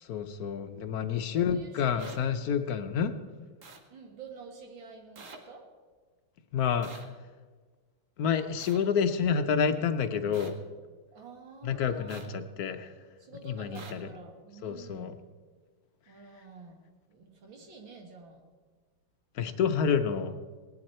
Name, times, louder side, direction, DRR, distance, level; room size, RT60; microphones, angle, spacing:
voice 1, 0.0-3.1 6.5-6.9 8.2-10.6 11.6-12.9 13.4-14.1 14.6-15.1 19.3-20.4, left 7 dB, 65° left, 8 dB, 1.0 m, -29 dB
voice 2, 1.3-2.7 3.9-5.6 11.1-12.2 13.2-15.1 16.1-16.8 17.1-18.4, right 3 dB, 75° right, 2 dB, 2.5 m, -49 dB
sound 1, 2.0-2.2 3.6-3.8 5.2-5.4 6.8-7.0 8.6-8.8 10.3-10.5 12.1-12.3 13.8-13.9, right 3 dB, 45° right, 1.3 m, -46 dB
18.5 x 10.5 x 4.3 m, 1.4 s
omnidirectional pair, 2.2 m